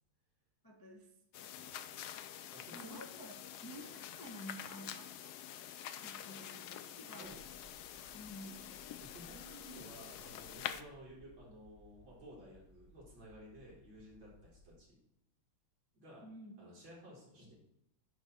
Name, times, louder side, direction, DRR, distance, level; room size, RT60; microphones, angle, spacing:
voice 1, 0.6-1.1 2.7-5.3 6.0-7.3 8.1-8.7 16.2-16.5, equal, 15° left, 0 dB, 0.7 m, -51 dB
sound 1, 1.3-10.8, left 10 dB, 80° left, 0.9 m, -47 dB
voice 2, 2.5-3.0 6.3-6.4 7.1-7.4 9.0-15.0 15.9-16.2 16.6-17.6, equal, 65° right, -5 dB, 4.4 m, -54 dB
sound 2, 7.2-14.8, equal, 15° right, 2.7 m, -63 dB
10.5 x 4.1 x 6.2 m, 0.79 s
omnidirectional pair, 2.3 m